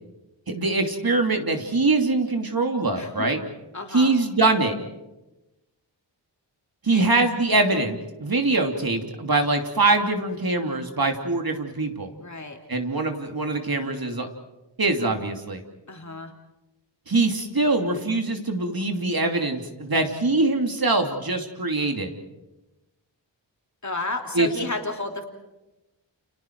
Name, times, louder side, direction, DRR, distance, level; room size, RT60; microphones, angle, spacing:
voice 1, 0.5-3.4 3.9-4.7 6.8-12.1 12.7-14.3 14.8-15.6 17.1-22.2 24.3-24.5, right 3 dB, 50° right, 4 dB, 2.8 m, -23 dB
voice 2, 2.9-3.3 3.7-4.1 6.9-7.1 12.2-12.6 15.9-16.3 23.8-25.3, left 2 dB, 40° left, 3 dB, 3.3 m, -32 dB
30.0 x 29.5 x 4.7 m, 1.0 s
wide cardioid pair, 75°, 45 cm